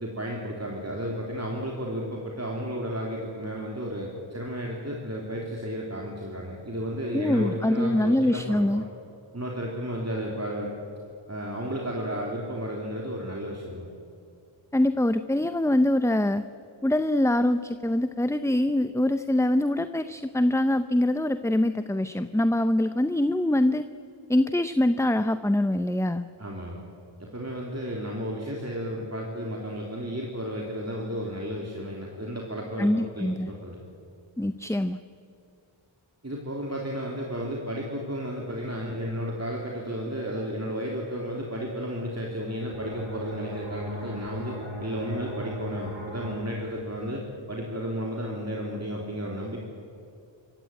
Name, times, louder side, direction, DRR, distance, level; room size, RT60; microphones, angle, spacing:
voice 1, 0.0-8.8 9.3-10.7 11.3-13.9 26.4-26.8 27.2-33.8 36.2-49.6, equal, 30° right, -2 dB, 3.2 m, -33 dB
voice 2, 7.1-8.8 14.7-16.4 16.8-23.9 24.3-26.3 32.8-33.5 34.4-35.0, left 1 dB, 5° left, 11 dB, 0.6 m, -24 dB
sound 1, 42.7-48.1, equal, 70° right, 7.7 m, -39 dB
26.0 x 15.5 x 9.1 m, 2.5 s
wide cardioid pair, 55°, 49 cm